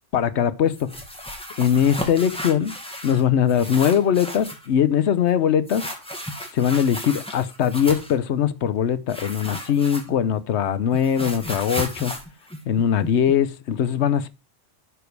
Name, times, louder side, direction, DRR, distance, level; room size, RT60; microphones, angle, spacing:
voice 1, 0.1-1.0 1.6-2.7 3.0-5.9 6.5-12.1 12.7-14.3, left 8 dB, 70° left, 1.1 m, -21 dB
sound 1, 0.7-3.2 3.5-4.7 5.7-8.2 9.1-10.4 10.7-13.3, equal, 5° left, 1.8 m, -34 dB
11.5 x 5.1 x 4.7 m
omnidirectional pair, 1.2 m